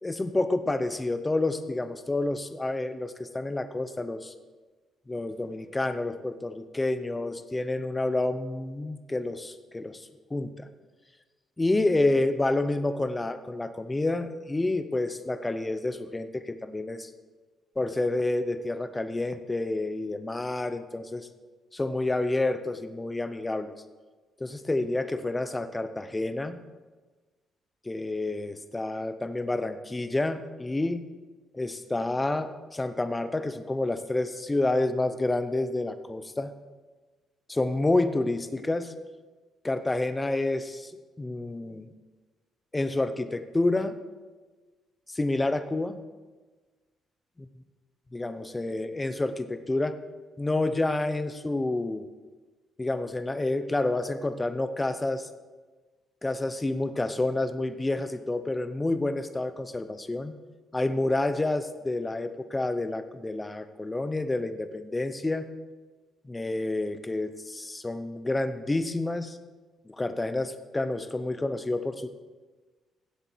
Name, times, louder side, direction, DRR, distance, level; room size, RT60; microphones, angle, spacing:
voice 1, 0.0-4.3 5.1-10.7 11.6-17.1 17.8-21.3 21.7-23.7 24.4-26.6 27.8-31.0 31.5-36.5 37.5-38.9 39.6-40.9 41.2-41.9 42.7-44.0 45.1-46.0 48.1-50.0 50.4-52.0 52.8-55.3 56.2-60.4 60.7-65.5 66.2-69.4 69.8-72.1, left 2 dB, 15° left, 11 dB, 0.8 m, -29 dB
16.5 x 7.8 x 4.6 m, 1.3 s
cardioid pair, 90°, 0 cm